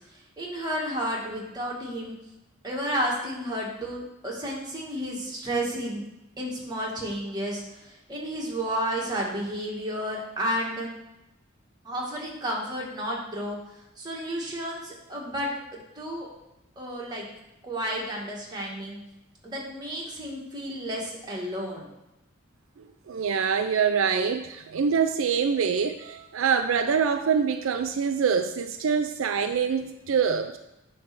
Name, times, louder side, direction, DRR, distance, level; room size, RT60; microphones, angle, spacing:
voice 1, 0.4-2.1 2.6-6.0 6.4-10.9 11.8-13.6 14.0-16.3 16.8-17.2 17.6-19.0 19.4-21.9, equal, 20° right, -3 dB, 1.9 m, -32 dB
voice 2, 23.1-30.6, right 6 dB, 75° right, 8 dB, 0.4 m, -25 dB
9.6 x 3.2 x 5.9 m, 0.91 s
head